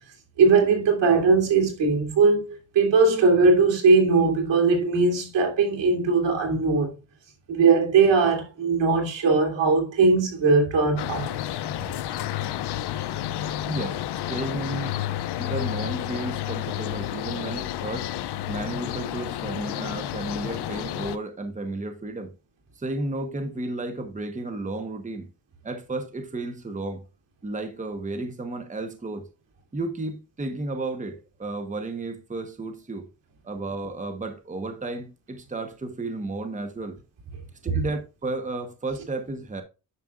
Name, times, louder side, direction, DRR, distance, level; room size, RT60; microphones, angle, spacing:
voice 1, 0.4-6.9 7.5-11.3 37.6-37.8, right 4 dB, 90° right, 2.9 m, -20 dB
sound 1, 11.0-21.2, left 12 dB, 70° left, 0.6 m, -31 dB
voice 2, 13.7-14.0 14.3-15.0 15.4-18.1 18.5-22.3 22.8-25.3 25.6-27.0 27.4-29.3 29.7-33.1 33.4-37.0 37.6-39.6, right 2 dB, 20° right, 1.0 m, -33 dB
9.6 x 6.0 x 2.4 m
wide cardioid pair, 135°, 42 cm